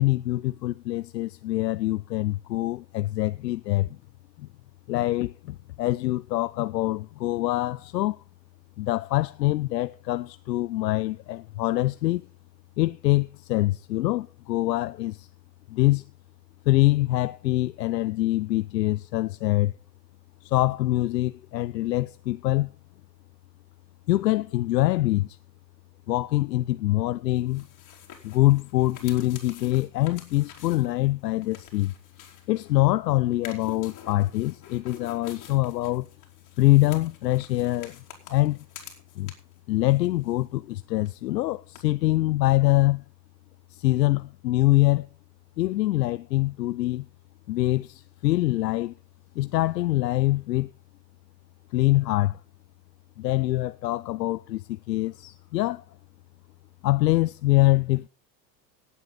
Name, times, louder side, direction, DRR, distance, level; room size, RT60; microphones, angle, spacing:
voice 1, 0.0-4.0 4.4-4.5 4.9-8.2 8.8-12.3 12.8-15.3 15.7-16.0 16.7-19.7 20.4-22.7 24.1-25.4 26.1-27.7 28.2-31.9 32.5-36.1 36.6-38.0 38.3-38.6 39.2-39.3 39.7-43.0 43.7-45.1 45.6-47.1 47.5-48.9 49.4-50.7 51.7-52.4 53.2-55.8 56.8-58.1, left 17 dB, 80° left, 0.6 m, -24 dB
sound 1, 27.4-32.9 33.3-39.6 39.9-40.7 41.0-41.1 41.8-41.9, left 8 dB, 35° left, 3.6 m, -48 dB
18.0 x 8.2 x 3.9 m
hypercardioid pair, 85°, 50 cm